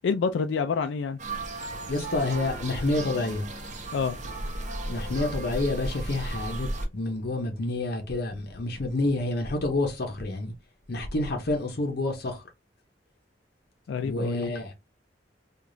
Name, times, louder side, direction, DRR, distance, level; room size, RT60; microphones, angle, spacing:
voice 1, 0.0-1.2 3.9-4.2 13.9-14.5, left 5 dB, 80° left, 0.3 m, -27 dB
sound 1, 1.2-6.9, right 2 dB, 40° right, 0.7 m, -35 dB
voice 2, 1.8-3.4 4.9-10.5 10.9-12.4 14.0-14.7, left 2 dB, 60° left, 0.7 m, -28 dB
4.8 x 2.4 x 2.6 m
head